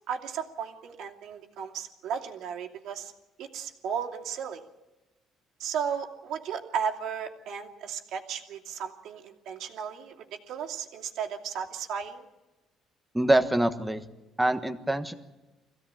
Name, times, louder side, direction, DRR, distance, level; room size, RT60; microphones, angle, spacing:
voice 1, 0.1-3.1 3.4-4.6 5.6-12.2, right 7 dB, 75° right, 2 dB, 2.7 m, -35 dB
voice 2, 13.1-14.0 14.4-15.1, right 1 dB, 5° right, 8 dB, 1.3 m, -24 dB
23.0 x 16.0 x 8.8 m, 1.1 s
cardioid pair, 130°, 0 cm